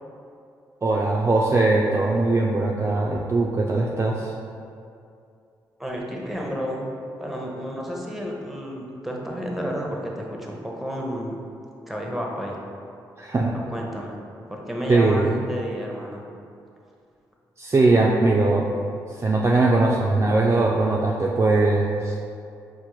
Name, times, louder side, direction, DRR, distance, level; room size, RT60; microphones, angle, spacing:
voice 1, 0.8-4.3 13.2-13.5 14.9-15.3 17.6-18.7 19.2-22.2, right 2 dB, 30° right, -2 dB, 0.3 m, -20 dB
voice 2, 5.8-6.9 7.2-11.4 11.9-12.6 13.7-14.1 14.5-16.2, equal, ahead, -1 dB, 0.7 m, -31 dB
4.3 x 2.1 x 3.0 m, 2.5 s
hypercardioid pair, 45°, 9 cm